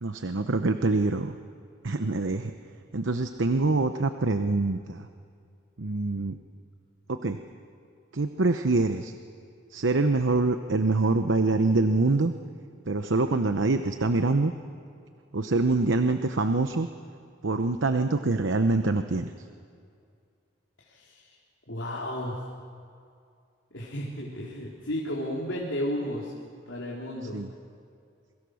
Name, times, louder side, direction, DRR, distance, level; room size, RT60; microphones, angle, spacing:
voice 1, 0.0-1.3 1.8-2.5 2.9-5.1 5.8-6.4 7.1-7.4 8.1-9.1 9.7-12.3 12.9-14.5 15.3-16.9 17.4-19.3 27.3-27.5, right 3 dB, 80° right, 8 dB, 0.9 m, -25 dB
voice 2, 20.9-21.3 21.7-22.4 23.7-26.3 26.7-27.4, equal, 80° left, -4 dB, 3.4 m, -33 dB
28.0 x 24.0 x 6.4 m, 2.3 s
head